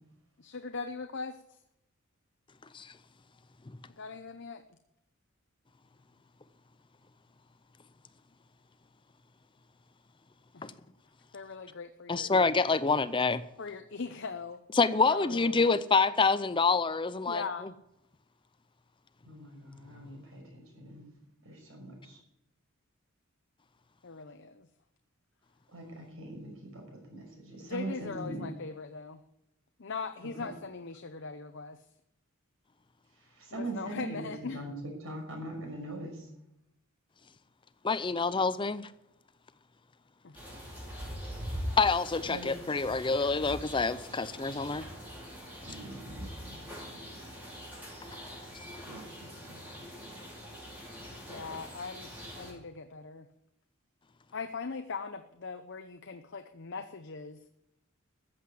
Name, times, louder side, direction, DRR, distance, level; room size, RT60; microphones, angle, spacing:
voice 1, 0.4-1.6 3.9-4.6 10.5-10.7 11.3-12.3 13.6-14.6 15.1-15.7 17.3-17.7 24.0-24.7 27.6-29.2 29.8-31.8 33.5-34.6 40.2-40.4 51.3-52.1 52.4-53.3 54.3-57.4, left 4 dB, 55° left, 0.8 m, -40 dB
voice 2, 12.1-13.4 14.8-17.7 37.8-38.9 41.8-44.9, left 4 dB, 25° left, 0.5 m, -27 dB
voice 3, 19.2-21.1 21.4-22.2 25.7-28.5 30.4-30.5 33.2-36.3 42.3-42.5 45.6-46.6 46.9-47.0 48.8-49.6, right 2 dB, 70° right, 6.0 m, -42 dB
sound 1, 40.3-52.5, equal, 10° right, 5.7 m, -43 dB
14.5 x 7.8 x 8.4 m
head